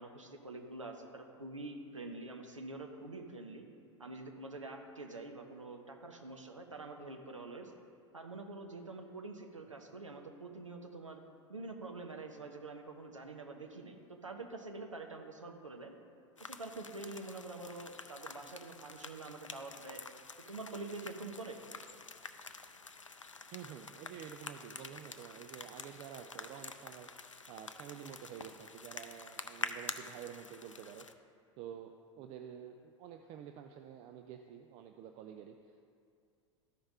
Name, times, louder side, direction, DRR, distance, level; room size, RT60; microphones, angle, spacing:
voice 1, 0.0-3.7 4.0-7.7 8.1-11.2 11.5-15.9 16.4-20.0 20.5-21.6, right 3 dB, 85° right, 4 dB, 0.8 m, -46 dB
sound 1, 16.4-31.1, left 4 dB, 90° left, 0.4 m, -48 dB
voice 2, 23.5-27.1 27.5-31.1 31.6-35.8, right 9 dB, 40° right, 6 dB, 0.4 m, -49 dB
13.0 x 5.2 x 3.6 m, 2.3 s
figure-of-eight pair, 80°, 16 cm